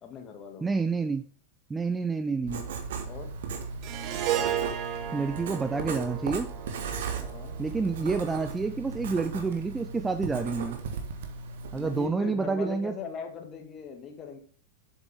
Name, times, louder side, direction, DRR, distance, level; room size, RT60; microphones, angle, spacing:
voice 1, 0.0-0.8 3.0-3.3 7.2-7.6 11.7-14.4, left 6 dB, 25° left, 3 dB, 2.0 m, -40 dB
voice 2, 0.6-1.2 1.7-2.7 5.1-6.5 7.6-10.8 11.7-12.9, right 4 dB, 10° right, 9 dB, 0.5 m, -29 dB
Writing, 2.5-12.1, right 4 dB, 60° right, 1.2 m, -37 dB
Harp, 3.8-8.3, right 11 dB, 40° right, 0.9 m, -34 dB
7.6 x 7.0 x 3.5 m, 0.43 s
figure-of-eight pair, 90°, 0 cm